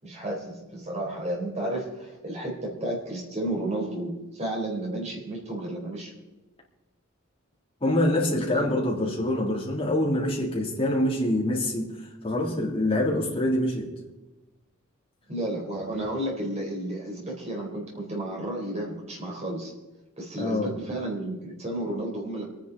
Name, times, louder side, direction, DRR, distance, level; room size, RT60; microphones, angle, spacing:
voice 1, 0.0-6.1 8.5-8.6 15.3-19.7 20.2-22.5, right 1 dB, 35° right, -1 dB, 4.4 m, -32 dB
voice 2, 7.8-11.9 12.2-13.9 20.4-20.7, left 1 dB, 25° left, -3 dB, 3.5 m, -25 dB
26.5 x 10.5 x 4.2 m, 1.1 s
head